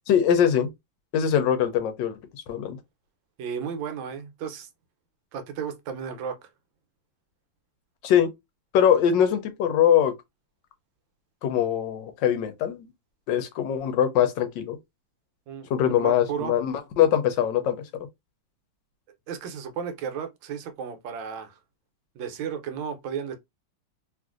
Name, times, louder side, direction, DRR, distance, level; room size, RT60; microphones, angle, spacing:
voice 1, 0.1-0.7 1.1-2.2 2.5-2.8 8.0-8.3 8.7-10.1 11.4-12.9 13.3-14.8 15.7-17.8, left 9 dB, 75° left, 1.2 m, -22 dB
voice 2, 3.4-4.7 5.3-6.5 15.5-15.7 16.0-16.6 19.3-21.6 22.1-23.4, right 7 dB, 80° right, 1.4 m, -34 dB
3.1 x 2.5 x 2.4 m
omnidirectional pair, 2.1 m